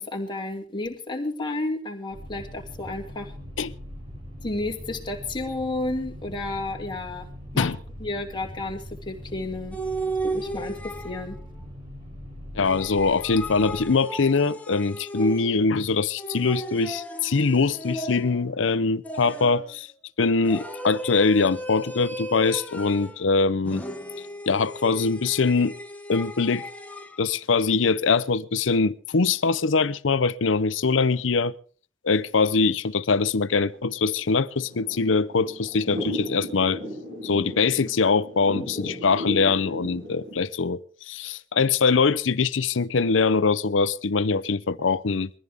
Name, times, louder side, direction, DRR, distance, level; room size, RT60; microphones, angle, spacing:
voice 1, 0.0-3.3 4.4-7.3 7.5-7.7 8.0-9.8 10.2-11.4, left 2 dB, 25° left, 2.6 m, -31 dB
sound 1, 2.1-13.9, equal, 30° right, 4.5 m, -41 dB
sound 2, 9.7-11.4 12.6-15.7 16.2-18.5 19.0-19.8 20.4-23.2 23.6-27.2, right 1 dB, 10° left, 1.3 m, -35 dB
voice 2, 12.5-19.9 20.2-23.8 24.5-25.7 26.1-26.6 27.2-31.5 32.0-36.8 37.2-40.8 41.1-45.3, left 4 dB, 80° left, 0.7 m, -23 dB
Thunder / Rain, 33.4-40.4, left 1 dB, 70° right, 7.9 m, -36 dB
21.5 x 14.5 x 3.6 m
head